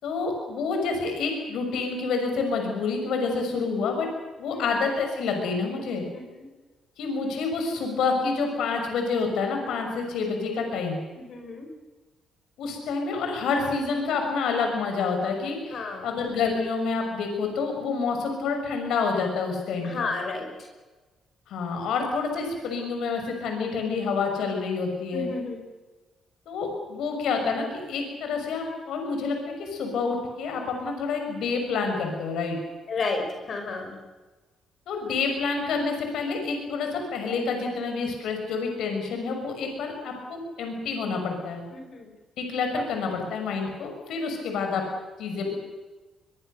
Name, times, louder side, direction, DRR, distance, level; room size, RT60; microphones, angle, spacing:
voice 1, 0.0-4.1 4.4-6.0 7.0-11.0 12.6-20.1 21.5-25.3 26.5-32.6 34.9-41.6 42.4-44.8 45.2-45.5, left 4 dB, 80° left, 3 dB, 6.2 m, -28 dB
voice 2, 6.1-6.5 11.2-11.7 15.7-16.1 19.8-20.7 25.1-25.6 32.9-34.0 41.7-42.1 43.6-43.7, left 3 dB, 55° left, 4 dB, 5.5 m, -32 dB
23.5 x 23.0 x 6.8 m, 1.2 s
cardioid pair, 90°, 0 cm